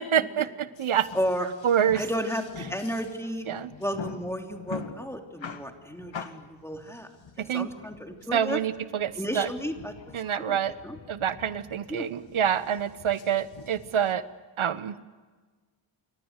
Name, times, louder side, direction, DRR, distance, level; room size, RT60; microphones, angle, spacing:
voice 1, 0.0-1.1 1.6-2.0 3.5-3.7 7.4-7.7 8.3-9.5 10.1-10.7 11.1-14.2 14.6-15.0, right 9 dB, 80° right, 14 dB, 1.2 m, -27 dB
sound 1, 0.8-14.1, left 5 dB, 65° left, 2.0 m, -45 dB
voice 2, 1.1-1.5 1.9-3.5 3.8-7.1 7.5-8.6 9.1-10.0 10.4-11.0 11.9-12.1, equal, 5° left, 4 dB, 3.1 m, -32 dB
29.5 x 24.5 x 8.2 m, 1.4 s
wide cardioid pair, 140°, 48 cm